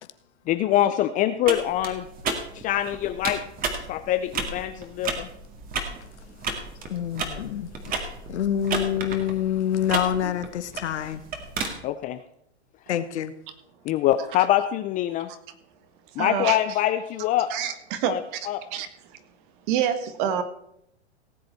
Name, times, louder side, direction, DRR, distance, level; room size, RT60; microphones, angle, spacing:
voice 1, 0.5-2.1 2.5-3.4 3.9-5.3 11.8-12.2 13.8-15.3 16.2-17.5 18.1-18.2 18.5-18.6, left 12 dB, 25° left, 0.5 m, -24 dB
sound 1, 1.4-11.7, right 4 dB, 25° right, 2.0 m, -33 dB
voice 2, 6.9-7.7 8.3-11.2 12.9-13.3, left 10 dB, 80° left, 1.1 m, -26 dB
voice 3, 16.2-16.6 17.5-18.4 18.7-18.9 19.7-20.4, right 9 dB, 50° right, 1.7 m, -26 dB
17.5 x 7.8 x 4.5 m
hypercardioid pair, 125°, 34 cm